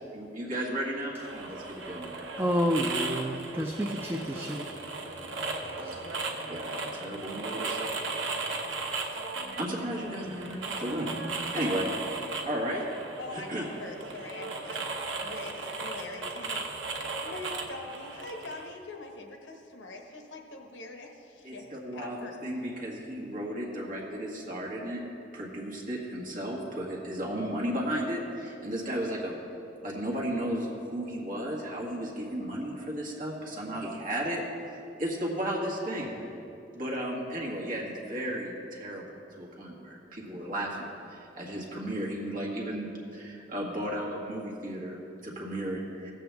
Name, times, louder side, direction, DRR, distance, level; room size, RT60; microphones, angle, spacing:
voice 1, 0.1-2.1 5.8-6.0 6.5-7.8 9.4-12.8 13.3-13.6 21.4-22.2 22.4-25.0 25.3-29.3 29.8-34.4 34.7-36.2 36.7-46.1, equal, 45° right, -3 dB, 1.8 m, -34 dB
sound 1, 1.2-18.7, right 3 dB, 80° right, 0.9 m, -36 dB
voice 2, 2.4-4.7 5.8-6.0, equal, 10° right, 2 dB, 0.4 m, -29 dB
voice 3, 13.2-14.9 15.2-16.9 17.2-21.7 21.9-22.4, left 2 dB, 75° left, 3 dB, 0.9 m, -43 dB
15.5 x 7.8 x 3.4 m, 2.9 s
head